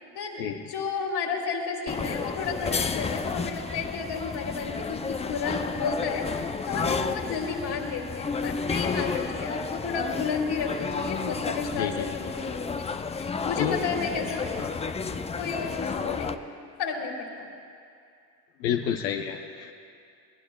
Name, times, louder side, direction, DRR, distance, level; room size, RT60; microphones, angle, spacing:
voice 1, 0.1-14.6 14.9-16.3 16.8-17.5, left 5 dB, 50° left, 1 dB, 2.8 m, -32 dB
sound 1, 1.9-16.3, left 5 dB, 15° left, 0.4 m, -32 dB
voice 2, 11.8-12.1 13.6-13.8 14.6-14.7 15.6-15.7 18.6-19.7, left 9 dB, 80° left, 4 dB, 0.8 m, -29 dB
23.5 x 19.5 x 2.3 m, 2.4 s
hypercardioid pair, 75°, 49 cm